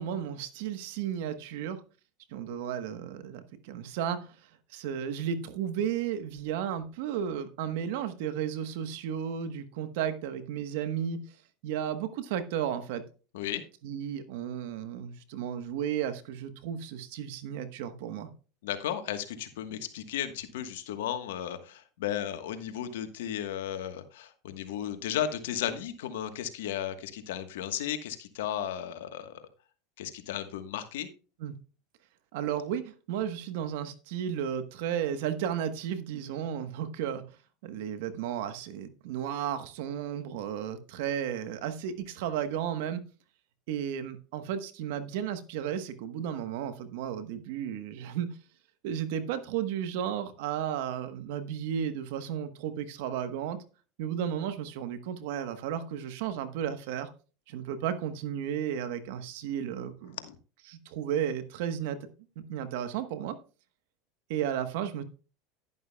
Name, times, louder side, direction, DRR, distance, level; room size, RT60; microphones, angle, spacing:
voice 1, 0.0-1.8 2.3-4.3 4.7-11.2 11.6-13.0 13.8-18.3 31.4-31.5 32.3-37.4 37.6-43.0 43.7-48.4 48.8-53.6 54.0-57.1 57.5-60.2 60.7-62.0 62.5-63.4 64.3-65.0, right 9 dB, 70° right, 11 dB, 1.1 m, -33 dB
voice 2, 18.6-29.4 30.0-31.1 60.2-60.4, left 10 dB, 80° left, 9 dB, 1.3 m, -34 dB
11.0 x 11.0 x 2.3 m, 0.35 s
hypercardioid pair, 100°, 0 cm